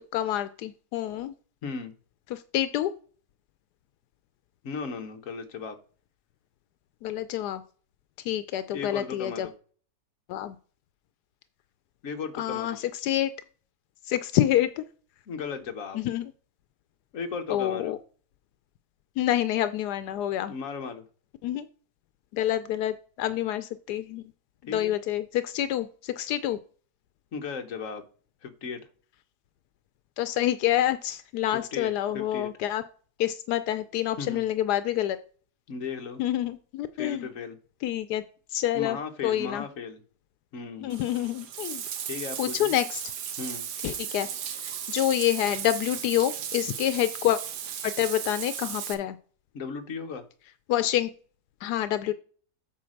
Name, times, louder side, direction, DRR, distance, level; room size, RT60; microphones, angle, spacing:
voice 1, 0.1-1.3 2.3-2.9 7.0-7.6 8.2-9.5 10.3-10.6 12.3-13.3 14.1-14.8 15.9-16.3 17.5-18.0 19.2-20.5 21.4-21.7 22.3-24.3 24.7-26.6 30.2-32.8 33.2-35.2 36.2-37.3 37.8-38.2 38.5-39.0 39.2-39.7 40.8-41.8 42.4-43.0 43.8-44.3 44.6-47.4 47.8-49.2 50.7-51.1 51.6-52.1, left 12 dB, 85° left, 12 dB, 1.1 m, -27 dB
voice 2, 1.6-1.9 4.6-5.8 8.7-9.5 12.0-12.8 15.3-16.0 17.1-18.0 20.5-21.0 24.7-24.9 27.3-28.0 28.4-28.8 31.5-32.5 34.2-34.4 35.7-36.2 37.0-37.6 38.7-40.0 40.5-40.9 42.0-42.7 43.4-43.7 49.5-50.3, left 5 dB, 55° left, 6 dB, 1.4 m, -36 dB
Bathtub (filling or washing), 40.9-48.9, right 9 dB, 85° right, 1.5 m, -36 dB
8.5 x 3.9 x 6.3 m, 0.42 s
omnidirectional pair, 1.7 m